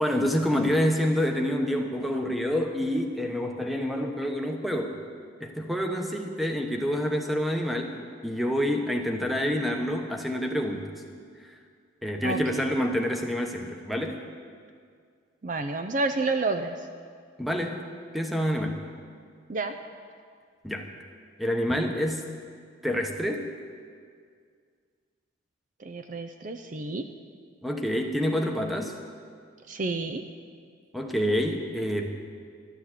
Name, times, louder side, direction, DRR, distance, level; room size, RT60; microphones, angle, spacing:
voice 1, 0.0-5.0 5.4-11.0 12.0-14.2 17.4-17.8 18.1-18.8 20.6-20.9 21.4-22.2 22.8-23.5 27.6-28.9 30.9-32.1, equal, ahead, 3 dB, 0.9 m, -27 dB
voice 2, 12.2-12.6 15.4-16.8 19.5-19.7 25.8-27.0 29.7-30.2, right 3 dB, 40° right, 6 dB, 0.5 m, -30 dB
13.0 x 7.0 x 9.9 m, 2.1 s
head